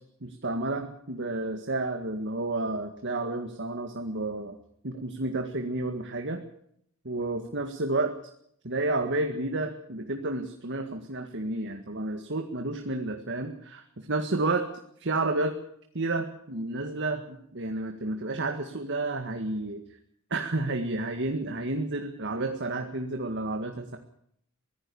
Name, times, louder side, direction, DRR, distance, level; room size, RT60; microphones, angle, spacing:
voice 1, 0.2-4.6 4.8-6.4 7.0-8.1 8.6-14.6 15.0-15.6 15.9-19.8 20.3-24.0, right 2 dB, 60° right, 5 dB, 1.9 m, -31 dB
24.0 x 16.5 x 7.1 m, 0.70 s
head